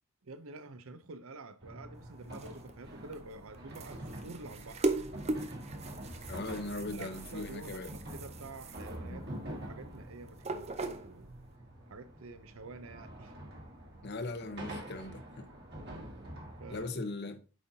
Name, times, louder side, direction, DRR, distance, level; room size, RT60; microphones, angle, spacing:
voice 1, 0.2-4.8 6.9-11.3 11.9-13.4 15.8-16.3 16.6-16.9, right 3 dB, 70° right, 0.7 m, -48 dB
sound 1, 1.6-16.9, right 1 dB, 50° right, 1.8 m, -46 dB
sound 2, 1.9-11.5, right 2 dB, 30° right, 0.5 m, -40 dB
voice 2, 6.3-7.9 9.1-9.2 14.0-15.2 16.7-17.5, left 2 dB, 50° left, 0.8 m, -39 dB
8.3 x 5.4 x 2.7 m
head